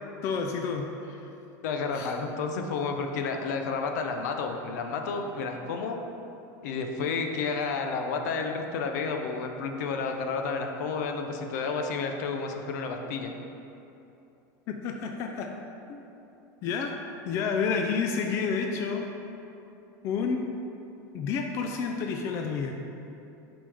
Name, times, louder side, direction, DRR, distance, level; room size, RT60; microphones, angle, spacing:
voice 1, 0.2-1.2 1.9-2.1 14.7-15.5 15.9-16.0 16.6-16.9 17.3-19.1 20.0-20.4 21.1-22.7, left 5 dB, 30° left, 3 dB, 0.4 m, -30 dB
voice 2, 1.6-6.0 6.6-13.3, left 4 dB, 70° left, 4 dB, 0.7 m, -31 dB
8.6 x 5.2 x 3.5 m, 2.9 s
supercardioid pair, 170°, 10 cm